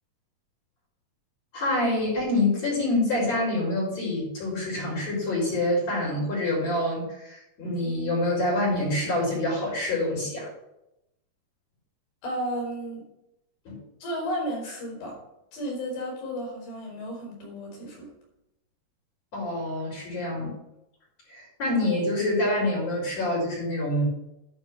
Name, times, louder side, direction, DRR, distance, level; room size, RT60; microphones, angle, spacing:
voice 1, 1.5-10.5 13.7-13.8 19.3-20.6 21.3-24.1, left 1 dB, 45° left, -5 dB, 5.1 m, -26 dB
voice 2, 12.2-13.0 14.0-15.2 15.5-18.1, equal, 75° left, -1 dB, 5.9 m, -33 dB
11.0 x 4.6 x 7.1 m, 0.86 s
omnidirectional pair, 4.5 m